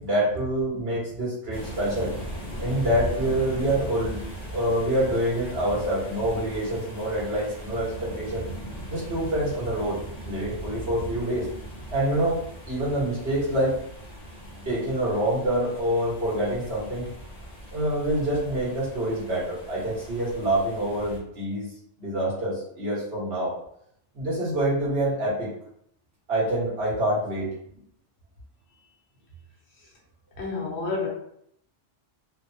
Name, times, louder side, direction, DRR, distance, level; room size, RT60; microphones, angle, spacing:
voice 1, 0.0-2.1 2.6-4.3 4.5-8.5 8.9-10.0 10.2-11.5 11.9-12.4 12.7-13.7 14.6-17.1 17.7-21.7 22.0-23.5 24.1-25.5 26.3-27.5, right 1 dB, 60° right, -8 dB, 1.5 m, -26 dB
sound 1, 1.5-21.2, right 1 dB, 45° left, 0.8 m, -38 dB
voice 2, 30.4-31.1, left 4 dB, 70° left, -1 dB, 1.0 m, -30 dB
3.2 x 2.1 x 2.6 m, 0.71 s
omnidirectional pair, 1.2 m